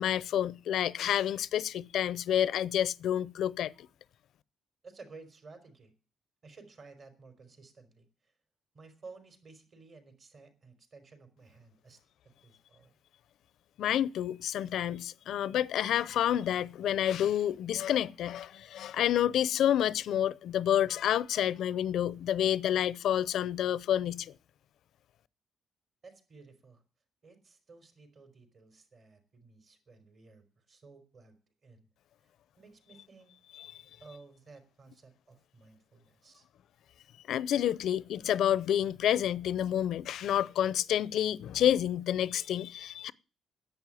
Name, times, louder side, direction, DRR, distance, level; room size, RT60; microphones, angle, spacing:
voice 1, 0.0-3.7 13.8-24.3 33.6-33.7 37.3-43.1, left 10 dB, 80° left, 0.6 m, -29 dB
voice 2, 4.8-5.9 6.4-8.3 8.7-12.0 12.4-12.9 26.0-26.8 27.2-31.4 31.6-31.9 32.6-33.3 34.0-36.5, right 4 dB, 50° right, 4.5 m, -54 dB
10.5 x 8.8 x 9.1 m
cardioid pair, 110°, 0 cm